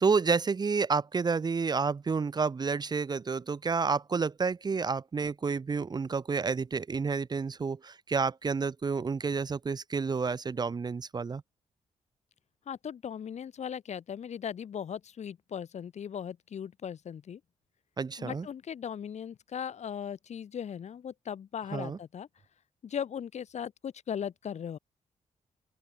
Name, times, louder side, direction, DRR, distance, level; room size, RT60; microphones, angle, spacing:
voice 1, 0.0-11.4 18.0-18.5 21.7-22.0, right 5 dB, 30° right, 1.1 m, -30 dB
voice 2, 12.7-17.4 18.2-22.3 22.8-24.8, left 8 dB, 60° left, 4.0 m, -38 dB
open air
cardioid pair, 125°, 13 cm